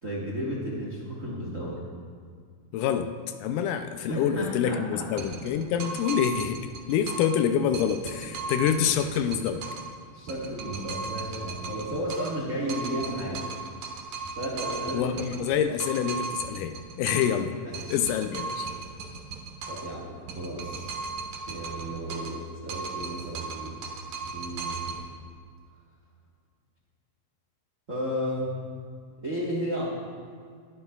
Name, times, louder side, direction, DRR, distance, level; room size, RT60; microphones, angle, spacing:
voice 1, 0.0-1.8 4.1-5.1 10.1-13.4 14.4-15.1 17.6-17.9 19.7-20.9 21.5-22.4 22.6-23.8 24.3-24.8 27.9-28.5 29.2-29.9, equal, 40° right, -4 dB, 1.1 m, -33 dB
voice 2, 2.7-3.1 3.4-6.6 6.9-9.6 14.9-17.5 17.9-18.7, left 8 dB, 80° left, 8 dB, 2.1 m, -26 dB
sound 1, 5.2-7.4 7.7-9.9 10.3-12.4 12.7-17.4 17.7-19.9 20.3-22.4 22.7-25.0, right 4 dB, 85° right, 2.8 m, -37 dB
21.0 x 9.6 x 2.4 m, 2.1 s
omnidirectional pair, 3.8 m